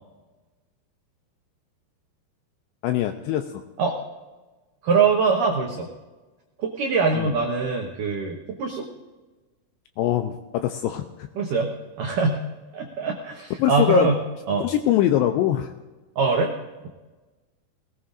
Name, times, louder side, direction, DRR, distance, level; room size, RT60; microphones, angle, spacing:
voice 1, 2.8-3.5 7.2-7.3 10.0-11.3 13.6-14.1 14.6-15.7, left 12 dB, 85° left, 7 dB, 2.5 m, -23 dB
voice 2, 4.8-5.9 6.6-8.9 11.4-11.7 12.0-12.4 12.7-14.2 14.5-14.7 16.2-16.5, right 4 dB, 90° right, 1 dB, 1.9 m, -23 dB
18.5 x 18.5 x 2.5 m, 1.2 s
omnidirectional pair, 5.5 m